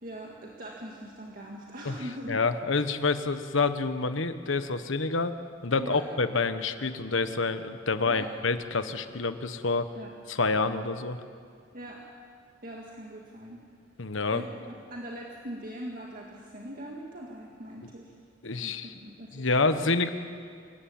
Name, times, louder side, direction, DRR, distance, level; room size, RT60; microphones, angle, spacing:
voice 1, 0.0-2.4 5.8-6.1 8.1-8.3 10.0-10.1 11.7-12.0 12.6-13.6 14.3-18.1 18.6-19.7, equal, 45° right, -1 dB, 2.0 m, -41 dB
voice 2, 2.3-5.3 5.6-9.9 10.3-11.2 14.0-14.4 18.4-18.9 19.3-20.1, left 3 dB, 80° left, 10 dB, 1.2 m, -27 dB
26.0 x 15.0 x 8.8 m, 2.2 s
head